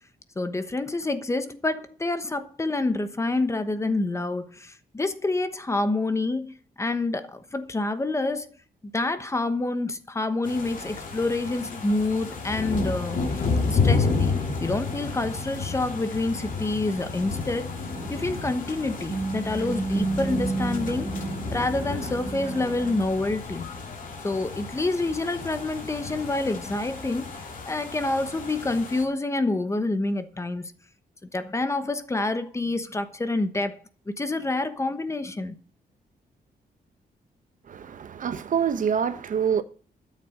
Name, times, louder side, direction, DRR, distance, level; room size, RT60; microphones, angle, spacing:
voice 1, 0.4-8.5 8.9-13.2 13.7-14.3 14.6-17.7 18.1-21.1 21.5-23.7 24.2-27.3 27.6-30.7 31.3-33.8 34.2-35.6, left 2 dB, 15° left, 1.1 m, -27 dB
sound 1, 10.4-29.0, left 4 dB, 55° left, 3.0 m, -31 dB
sound 2, 17.9-23.0, right 3 dB, 30° right, 1.9 m, -32 dB
voice 2, 37.7-39.6, right 7 dB, 55° right, 1.0 m, -26 dB
13.0 x 7.5 x 6.5 m
wide cardioid pair, 175°, 17 cm